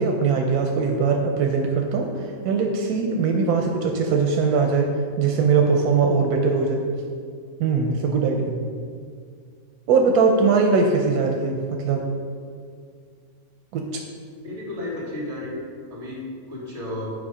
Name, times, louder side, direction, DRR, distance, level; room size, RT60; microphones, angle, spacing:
voice 1, 0.0-4.9 5.2-6.8 7.6-8.6 9.9-12.0 13.7-14.0, right 4 dB, 90° right, 2 dB, 1.2 m, -21 dB
voice 2, 14.4-15.6 15.9-17.1, left 1 dB, 50° right, -4 dB, 2.5 m, -33 dB
8.4 x 5.1 x 4.9 m, 2.1 s
omnidirectional pair, 1.6 m